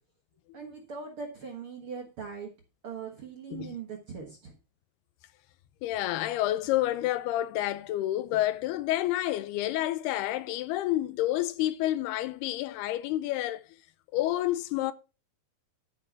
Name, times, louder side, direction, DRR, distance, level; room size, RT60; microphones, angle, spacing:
voice 1, 0.5-2.5 2.8-4.5, right 5 dB, 55° right, 1.6 m, -40 dB
voice 2, 5.8-13.6 14.1-14.9, left 14 dB, 90° left, 2.8 m, -29 dB
13.0 x 5.6 x 5.9 m
omnidirectional pair, 4.5 m